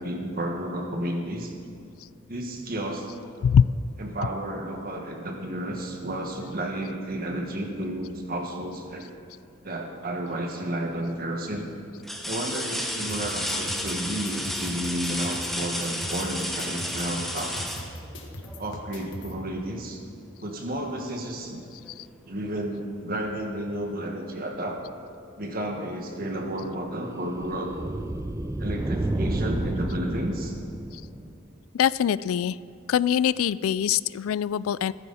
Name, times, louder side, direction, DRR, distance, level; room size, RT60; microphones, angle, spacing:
voice 1, 0.0-1.5 2.3-3.1 4.0-9.1 9.6-11.7 12.3-17.6 18.6-20.0 20.4-21.6 22.3-24.8 25.4-27.8 28.6-30.6, right 1 dB, 45° right, 2 dB, 1.7 m, -32 dB
sound 1, 10.3-10.8 11.3-11.4 12.0-18.7 20.5-20.6 21.1-22.1 23.4-23.5, equal, ahead, 1.1 m, -33 dB
sound 2, 13.1-19.3, left 1 dB, 60° left, 1.6 m, -41 dB
sound 3, 26.2-31.6, right 1 dB, 15° right, 0.5 m, -31 dB
voice 2, 31.7-32.6 32.9-34.9, left 8 dB, 80° left, 19 dB, 0.3 m, -23 dB
15.5 x 14.5 x 4.2 m, 2.4 s
head